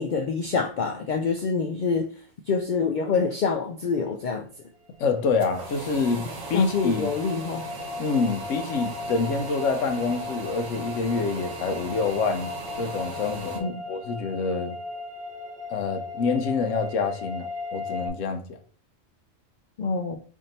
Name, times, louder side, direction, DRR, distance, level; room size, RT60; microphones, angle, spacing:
voice 1, 0.0-2.1 2.5-4.5 6.5-7.6 13.6-13.8 19.8-20.2, left 5 dB, 90° left, 0.4 m, -26 dB
sound 1, 4.9-18.1, left 3 dB, 40° right, 1.0 m, -37 dB
voice 2, 5.0-7.1 8.0-14.7 15.7-18.6, left 4 dB, 75° left, 1.0 m, -27 dB
sound 2, 5.2-13.6, right 3 dB, 65° right, 1.1 m, -38 dB
3.5 x 2.7 x 3.9 m
omnidirectional pair, 1.4 m